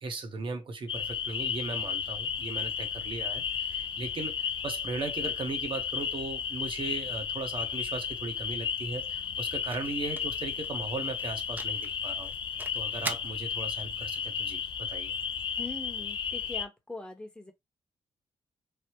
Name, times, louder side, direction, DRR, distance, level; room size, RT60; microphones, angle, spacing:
voice 1, 0.0-12.3 12.7-15.1, right 3 dB, 50° right, 0.8 m, -37 dB
sound 1, 0.9-16.7, left 7 dB, 50° left, 0.4 m, -34 dB
sound 2, 8.1-16.2, right 2 dB, 15° right, 0.4 m, -46 dB
voice 2, 15.6-17.5, left 2 dB, 10° left, 0.8 m, -42 dB
3.3 x 2.0 x 2.9 m
cardioid pair, 90°, 11 cm